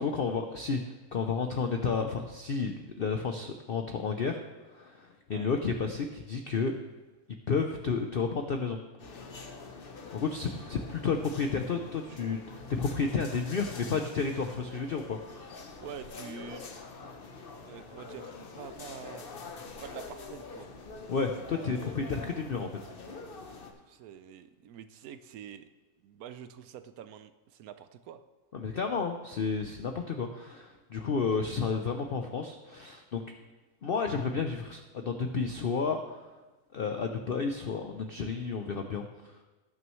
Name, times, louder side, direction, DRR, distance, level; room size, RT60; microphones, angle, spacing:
voice 1, 0.0-4.4 4.7-6.8 7.5-8.8 10.1-15.7 21.1-22.7 23.2-23.3 28.5-33.2 33.8-36.3 36.7-39.4, left 5 dB, 70° left, 5 dB, 0.5 m, -32 dB
sound 1, 9.0-23.7, left 4 dB, 45° left, 0.9 m, -45 dB
voice 2, 15.8-16.7 17.5-19.3 19.8-20.7 23.9-25.7 26.0-28.2, right 9 dB, 70° right, 11 dB, 1.0 m, -46 dB
18.0 x 6.2 x 3.1 m, 1.2 s
omnidirectional pair, 1.7 m